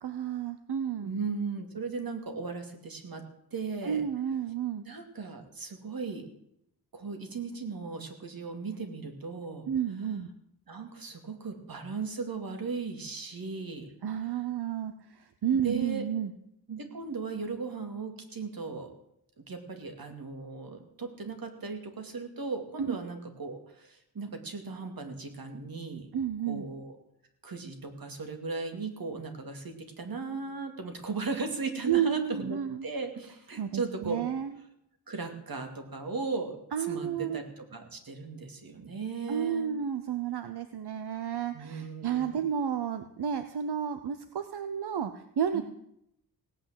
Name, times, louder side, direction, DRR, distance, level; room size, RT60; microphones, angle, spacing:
voice 1, 0.0-1.1 3.8-4.9 9.7-10.3 14.0-16.3 22.8-23.0 26.1-26.7 31.8-32.9 33.6-34.5 36.7-37.4 39.3-45.6, right 8 dB, 85° right, 10 dB, 0.9 m, -31 dB
voice 2, 1.0-3.2 3.5-4.1 4.9-6.2 6.9-9.7 10.7-13.9 15.6-16.0 16.7-18.9 19.4-26.1 26.5-27.0 27.4-34.3 35.1-36.6 36.9-39.7 41.5-42.4 45.5-45.6, right 4 dB, 65° right, 5 dB, 2.6 m, -37 dB
17.0 x 9.0 x 7.7 m, 0.77 s
wide cardioid pair, 90°, 38 cm